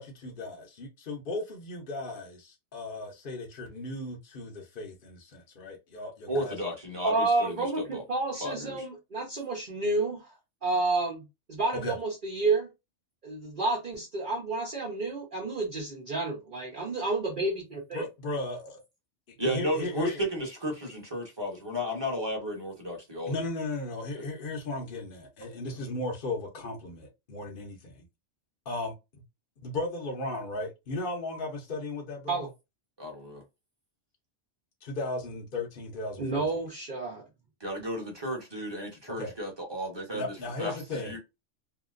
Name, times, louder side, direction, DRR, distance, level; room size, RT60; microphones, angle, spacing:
voice 1, 0.0-6.6 11.8-12.0 17.9-18.8 19.4-20.2 23.3-28.0 28.7-28.9 29.6-32.4 34.8-36.4 39.2-39.3 40.1-41.1, left 2 dB, 50° left, 0.9 m, -36 dB
voice 2, 6.3-8.0 8.4-8.8 19.4-23.3 24.2-24.3 33.0-33.4 37.6-41.2, equal, 20° right, 1.1 m, -33 dB
voice 3, 7.0-10.3 10.6-12.7 13.2-18.1 32.3-32.5 36.2-37.2, right 3 dB, 45° right, 1.0 m, -30 dB
2.8 x 2.8 x 2.5 m
omnidirectional pair, 1.2 m